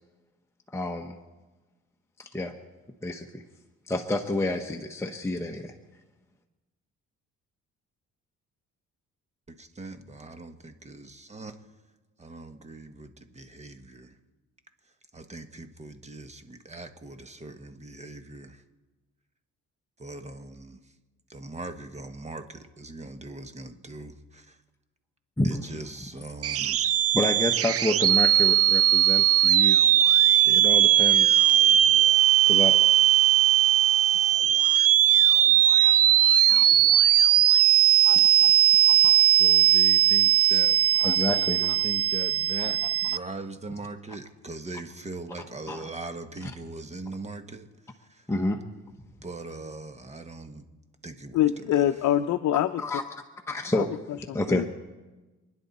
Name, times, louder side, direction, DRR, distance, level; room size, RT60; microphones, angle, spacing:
voice 1, 0.7-1.2 2.2-2.5 3.0-3.4 3.9-5.7 25.4-25.8 27.1-29.8 30.4-31.4 32.5-32.8 35.8-35.9 36.5-36.6 38.0-38.5 38.9-39.2 41.0-41.6 45.7-45.8 48.3-48.6 52.8-53.0 53.5-53.9 54.3-54.7, left 1 dB, 10° left, 2 dB, 1.1 m, -29 dB
voice 2, 9.5-11.5 12.2-14.2 15.1-18.6 20.0-20.8 21.3-24.6 25.4-27.1 39.3-40.8 41.3-48.3 49.2-50.7 51.0-51.9, right 2 dB, 20° right, 8 dB, 1.4 m, -41 dB
sound 1, 26.4-43.2, right 11 dB, 50° right, 0.6 m, -19 dB
voice 3, 51.3-52.8 53.7-53.9 54.3-54.7, left 12 dB, 70° left, 8 dB, 0.7 m, -24 dB
28.5 x 10.5 x 4.2 m, 1.2 s
cardioid pair, 90°, 30 cm